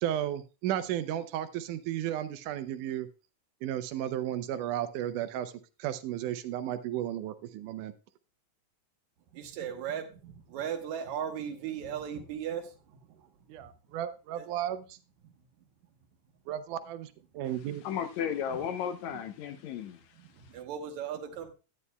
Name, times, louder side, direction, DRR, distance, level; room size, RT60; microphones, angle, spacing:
voice 1, 0.0-3.1 3.6-5.5 5.8-7.9 13.5-15.0 16.5-17.8, right 11 dB, 85° right, 12 dB, 2.2 m, -34 dB
voice 2, 9.3-13.3 14.4-14.5 20.2-21.5, right 8 dB, 70° right, 6 dB, 2.3 m, -37 dB
voice 3, 17.8-20.5, left 8 dB, 75° left, 9 dB, 1.9 m, -35 dB
12.5 x 9.7 x 2.2 m, 0.32 s
omnidirectional pair, 3.5 m